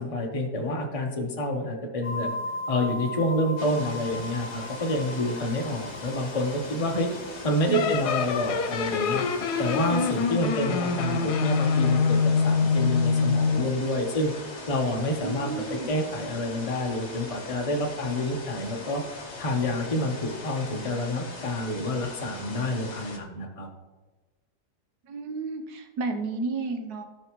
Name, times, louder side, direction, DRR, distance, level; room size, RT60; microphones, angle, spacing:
voice 1, 0.0-2.3 2.7-7.1 7.4-9.2 9.6-12.2 12.4-14.3 14.7-19.0 19.4-23.7, left 1 dB, 25° left, 0 dB, 1.1 m, -28 dB
sound 1, 2.0-10.2, left 1 dB, 10° left, 1.3 m, -39 dB
sound 2, 3.6-23.2, left 3 dB, 45° left, 1.6 m, -41 dB
sound 3, 7.7-13.8, left 5 dB, 80° left, 1.4 m, -25 dB
voice 2, 15.2-15.9 25.1-27.0, right 3 dB, 75° right, 5 dB, 1.5 m, -32 dB
16.5 x 5.5 x 3.1 m, 1.2 s
omnidirectional pair, 1.7 m